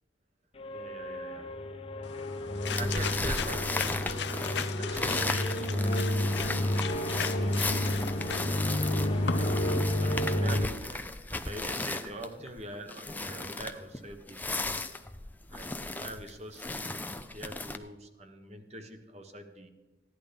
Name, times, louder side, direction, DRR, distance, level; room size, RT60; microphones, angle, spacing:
sound 1, 0.6-10.7, left 1 dB, 30° left, 1.0 m, -31 dB
voice 1, 0.7-1.5 2.7-6.6 7.1-8.0 9.0-9.6 9.8-11.0 11.3-14.8 15.5-19.7, right 1 dB, 40° right, 6 dB, 1.4 m, -44 dB
sound 2, 2.0-9.6, left 7 dB, 80° left, 0.7 m, -38 dB
sound 3, 2.6-17.8, left 2 dB, 10° left, 0.6 m, -36 dB
15.5 x 11.0 x 5.2 m, 1.1 s
head